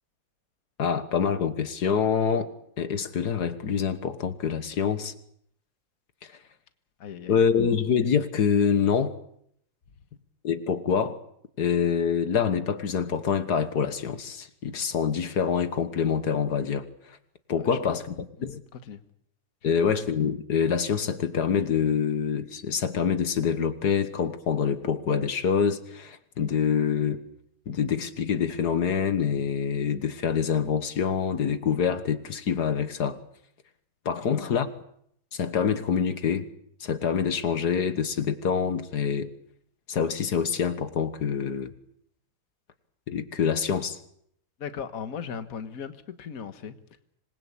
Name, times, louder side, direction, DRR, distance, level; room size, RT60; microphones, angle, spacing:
voice 1, 0.8-2.5 2.8-5.1 6.2-6.3 7.3-9.1 10.4-11.2 11.6-16.9 17.5-18.0 18.4-18.6 19.6-27.2 27.7-33.2 34.1-34.7 35.3-36.5 36.8-39.3 39.9-41.7 43.1-44.0, left 7 dB, 80° left, 1.9 m, -26 dB
voice 2, 7.0-7.5 17.6-18.0 18.4-18.5 18.7-19.0 19.6-19.8 34.3-34.6 44.6-46.8, left 7 dB, 60° left, 1.8 m, -38 dB
26.5 x 21.0 x 8.6 m
omnidirectional pair, 1.7 m